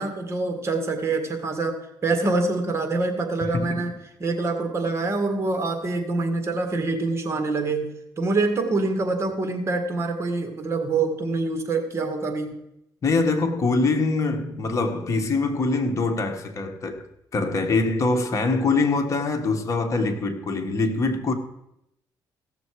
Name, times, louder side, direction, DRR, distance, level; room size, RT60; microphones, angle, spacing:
voice 1, 0.0-3.9 4.2-12.5, right 3 dB, 35° right, 1.9 m, -25 dB
voice 2, 3.4-4.0 13.0-21.3, left 3 dB, 40° left, 1.5 m, -24 dB
16.5 x 6.9 x 4.8 m
cardioid pair, 100°, 8 cm